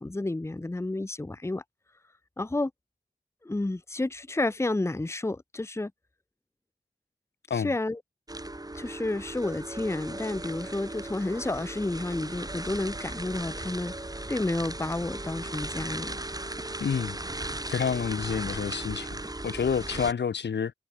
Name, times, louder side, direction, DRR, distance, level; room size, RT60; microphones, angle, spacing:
voice 1, 0.0-1.6 2.4-2.7 3.4-5.9 7.5-8.0 8.7-13.9 14.3-16.2, left 2 dB, 15° left, 0.8 m, -31 dB
sound 1, 8.3-20.1, right 2 dB, 20° right, 3.7 m, -37 dB
voice 2, 16.8-17.2 17.7-20.7, left 6 dB, 75° left, 1.4 m, -29 dB
cardioid pair, 55°, 18 cm